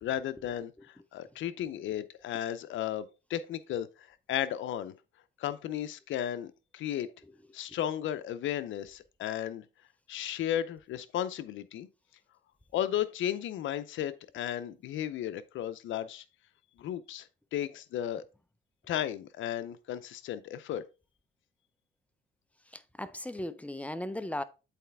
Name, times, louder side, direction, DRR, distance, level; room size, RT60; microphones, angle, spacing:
voice 1, 0.0-4.9 5.4-7.1 7.5-9.6 10.1-11.9 12.7-16.2 16.8-18.2 18.9-20.8, left 11 dB, 75° left, 0.6 m, -34 dB
voice 2, 22.7-24.4, left 1 dB, 5° left, 0.5 m, -37 dB
8.3 x 4.2 x 3.4 m
cardioid pair, 90°, 20 cm